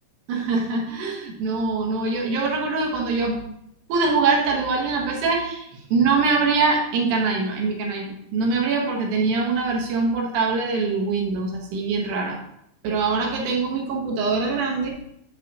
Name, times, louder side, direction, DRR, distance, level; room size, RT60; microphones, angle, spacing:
voice 1, 0.3-3.4 3.9-12.4 12.8-14.9, right 4 dB, 70° right, 0 dB, 2.3 m, -23 dB
8.2 x 4.8 x 2.8 m, 0.74 s
omnidirectional pair, 4.0 m